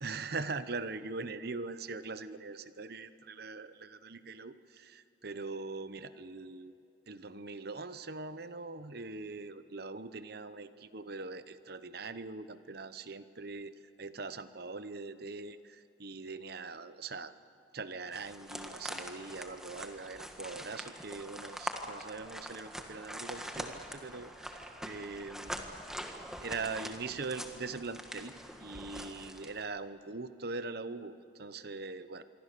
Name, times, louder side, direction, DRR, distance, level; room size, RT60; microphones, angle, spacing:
voice 1, 0.0-6.7 7.1-17.3 17.7-25.8 26.4-28.3 28.6-32.2, right 3 dB, 60° right, 12 dB, 0.9 m, -42 dB
sound 1, 18.1-29.6, equal, 5° right, 1.6 m, -44 dB
26.5 x 23.5 x 6.9 m, 2.9 s
head